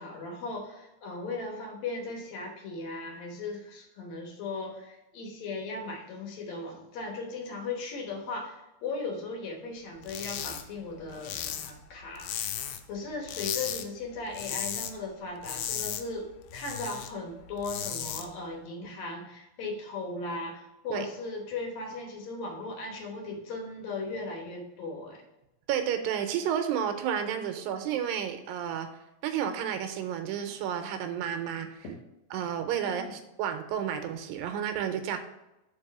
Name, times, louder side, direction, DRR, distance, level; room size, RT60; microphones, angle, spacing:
voice 1, 0.0-25.2 31.8-32.0 32.8-33.2, left 3 dB, 65° left, 1 dB, 2.0 m, -37 dB
sound 1, 10.0-10.6 10.9-12.9 13.2-13.8 14.2-14.9 15.2-17.1 17.5-18.2, left 9 dB, 85° left, 2.5 m, -35 dB
voice 2, 25.7-28.9 29.2-31.9 32.3-35.2, right 9 dB, 80° right, 7 dB, 2.3 m, -31 dB
5.2 x 4.7 x 6.0 m, 0.93 s
omnidirectional pair, 4.2 m